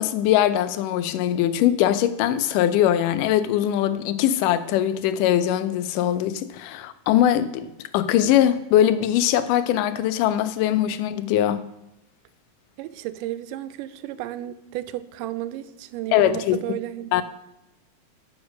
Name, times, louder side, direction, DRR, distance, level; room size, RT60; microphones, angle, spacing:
voice 1, 0.0-7.7 7.9-11.7 16.1-16.6 17.1-17.2, left 11 dB, 85° left, 2.1 m, -21 dB
voice 2, 12.8-17.1, right 14 dB, 85° right, 2.1 m, -33 dB
9.5 x 5.3 x 6.1 m
omnidirectional pair, 3.7 m